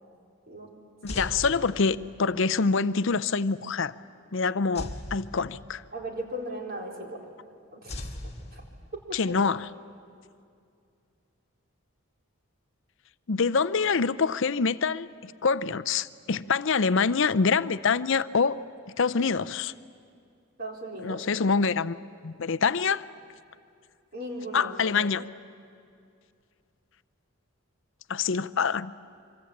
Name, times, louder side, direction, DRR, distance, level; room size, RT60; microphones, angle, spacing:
voice 1, 1.0-3.9 4.3-5.8 9.1-9.7 13.3-18.6 19.0-19.7 21.0-22.0 22.2-23.0 24.5-25.2 28.1-28.9, left 5 dB, 55° left, 16 dB, 0.6 m, -25 dB
sound 1, 1.1-2.3 4.7-6.0 7.9-9.2, left 1 dB, 25° left, 1.7 m, -39 dB
voice 2, 5.9-7.2 7.7-7.9 8.5-8.6 8.9-9.3 20.6-21.2 24.1-25.1, right 1 dB, 45° right, 0 dB, 4.1 m, -37 dB
25.5 x 25.0 x 8.6 m, 2.4 s
head